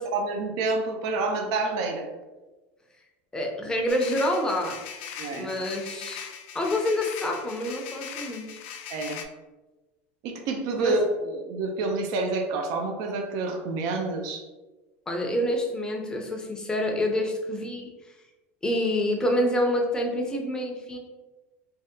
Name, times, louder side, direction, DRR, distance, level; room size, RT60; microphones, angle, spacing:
voice 1, 0.1-2.1 5.2-5.5 8.9-9.2 10.2-14.4, right 3 dB, 60° right, 3 dB, 0.5 m, -28 dB
voice 2, 3.3-4.8 5.3-6.3 6.5-8.5 10.8-11.0 15.1-17.9 18.6-21.0, left 1 dB, 10° left, 1 dB, 0.6 m, -27 dB
sound 1, 3.9-9.3, left 8 dB, 85° left, 0.4 m, -40 dB
2.8 x 2.1 x 3.5 m, 1.1 s
supercardioid pair, 120°, 7 cm